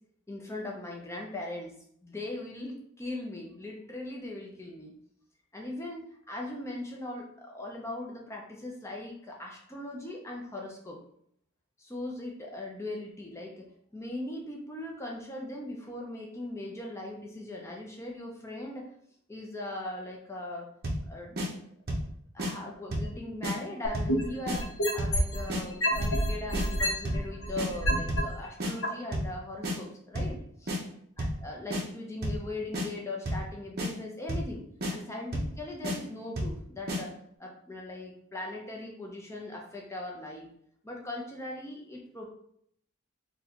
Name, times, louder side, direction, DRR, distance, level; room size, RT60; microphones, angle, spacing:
voice 1, 0.3-1.7 2.0-4.9 5.5-11.0 11.8-18.9 19.3-20.7 21.1-21.6 22.3-30.8 31.2-34.6 34.9-40.5 40.8-42.3, left 2 dB, 15° left, -1 dB, 0.5 m, -39 dB
sound 1, 20.8-21.1 21.4-21.5 21.9-22.1 22.4-22.5 22.9-23.1 23.4-23.6 23.9-24.2 24.5-24.6 25.0-25.2 25.5-25.6 26.0-26.2 26.5-26.7 27.0-27.3 27.6-27.7 28.1-28.3 28.6-28.7 29.1-29.3 29.6-29.8 30.1-30.4 30.7-30.8 31.2-31.4 31.7-31.8 32.2-32.4 32.7-32.9 33.3-33.5 33.8-33.9 34.3-34.5 34.8-34.9 35.3-35.5 35.8-36.0 36.4-36.6 36.9-37.0, equal, 45° right, 0.6 m, -31 dB
sound 2, 23.8-25.4 25.8-28.2 28.8-28.9, equal, 70° left, 0.8 m, -28 dB
3.9 x 2.2 x 2.8 m, 0.68 s
head